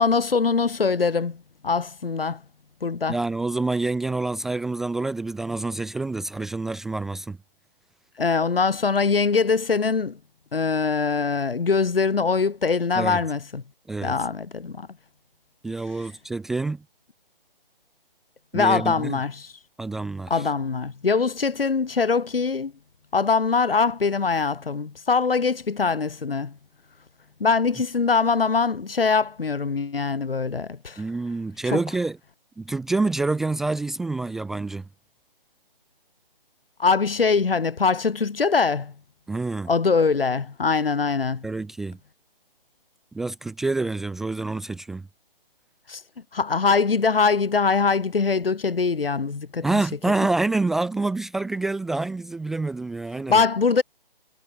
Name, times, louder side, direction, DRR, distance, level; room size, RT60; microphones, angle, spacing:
voice 1, 0.0-2.4 2.8-3.2 8.2-10.2 10.5-13.6 14.0-14.9 18.5-19.5 20.3-22.7 23.1-26.6 27.4-31.0 31.7-31.8 36.8-38.9 39.7-41.5 45.9-46.0 46.3-49.7 53.3-53.8, left 4 dB, 75° left, 2.7 m, -22 dB
voice 2, 3.1-7.4 13.0-13.2 13.9-14.2 15.6-16.8 18.5-19.2 19.8-20.5 31.0-32.2 32.6-34.9 39.3-39.7 41.4-42.0 43.1-45.1 49.6-53.4, right 3 dB, ahead, 0.7 m, -27 dB
hypercardioid pair, 160°, 29 cm